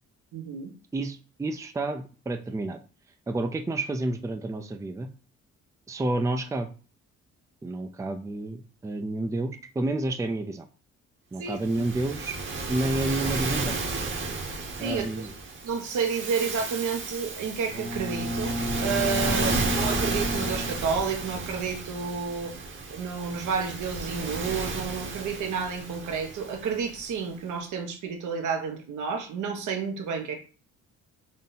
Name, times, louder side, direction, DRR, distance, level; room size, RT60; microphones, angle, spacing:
voice 1, 0.3-0.7 11.4-11.8 14.8-15.2 15.6-22.5 22.9-30.4, right 5 dB, 75° right, 4 dB, 1.1 m, -30 dB
voice 2, 0.9-2.8 3.3-5.1 5.9-6.7 7.6-10.7 11.3-12.4 12.7-13.8 14.8-15.3 19.3-19.5, right 2 dB, 10° right, 7 dB, 0.4 m, -30 dB
Waves surf, 11.6-27.1, right 3 dB, 40° right, 1.1 m, -33 dB
Bowed string instrument, 17.7-21.5, left 1 dB, 60° right, 2.0 m, -32 dB
3.8 x 2.7 x 3.9 m, 0.38 s
cardioid pair, 90°, 30 cm